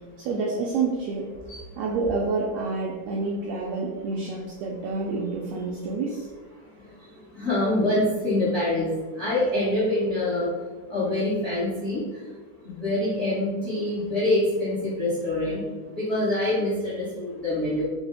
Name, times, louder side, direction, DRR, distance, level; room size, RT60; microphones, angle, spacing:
voice 1, 0.2-1.3 1.8-6.3, right 3 dB, 85° right, -3 dB, 1.5 m, -28 dB
voice 2, 7.3-10.5 10.9-12.2 12.6-17.8, left 1 dB, 60° left, -10 dB, 0.7 m, -25 dB
5.8 x 2.1 x 4.0 m, 1.4 s
omnidirectional pair, 3.6 m